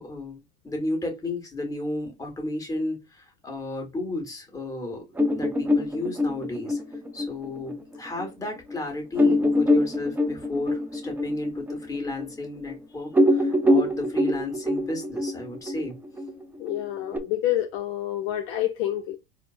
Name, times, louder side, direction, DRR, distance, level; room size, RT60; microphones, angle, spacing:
voice 1, 0.0-5.0 5.3-6.8 7.1-16.0, left 2 dB, 10° left, 1.6 m, -33 dB
sound 1, 5.2-8.3 8.7-8.8 9.2-12.8 13.1-17.2, left 1 dB, 5° right, 0.5 m, -24 dB
voice 2, 16.6-19.2, left 13 dB, 45° left, 0.6 m, -28 dB
4.2 x 2.0 x 2.5 m
hypercardioid pair, 90°, 30 cm